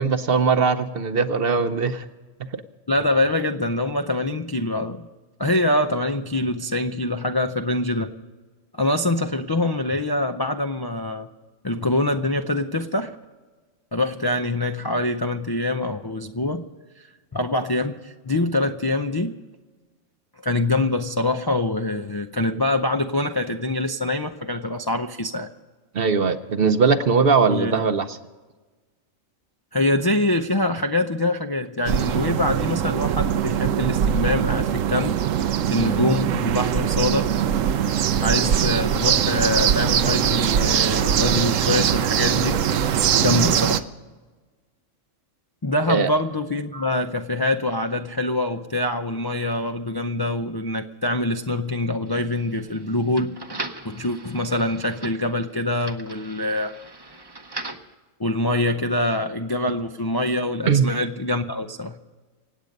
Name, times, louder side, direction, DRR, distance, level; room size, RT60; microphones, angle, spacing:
voice 1, 0.0-2.1 25.9-28.1 45.9-46.1 60.7-60.9, right 5 dB, 50° right, 10 dB, 0.9 m, -20 dB
voice 2, 2.9-5.1 5.4-8.1 8.7-11.3 11.6-13.1 13.9-16.6 17.3-19.3 20.4-25.5 27.5-27.9 29.7-35.2 35.7-37.3 38.2-42.6 43.2-43.9 45.6-56.8 58.2-62.0, left 1 dB, 30° left, 5 dB, 0.4 m, -24 dB
sound 1, 31.9-43.8, right 9 dB, 80° right, 1.1 m, -22 dB
sound 2, 52.1-57.9, right 2 dB, 20° right, 0.8 m, -39 dB
26.0 x 8.6 x 5.3 m, 1.3 s
omnidirectional pair, 1.3 m